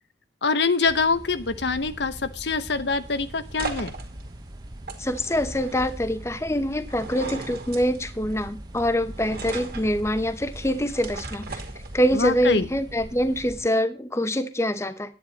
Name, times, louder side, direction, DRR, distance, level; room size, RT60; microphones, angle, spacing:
voice 1, 0.4-3.9 12.1-12.7, left 4 dB, 70° left, 0.9 m, -24 dB
sound 1, 0.8-13.7, right 1 dB, 20° right, 0.8 m, -41 dB
sound 2, 2.4-12.3, right 3 dB, 55° right, 2.3 m, -39 dB
voice 2, 5.0-11.6 11.9-15.1, equal, 15° left, 0.9 m, -25 dB
9.9 x 9.6 x 4.1 m
head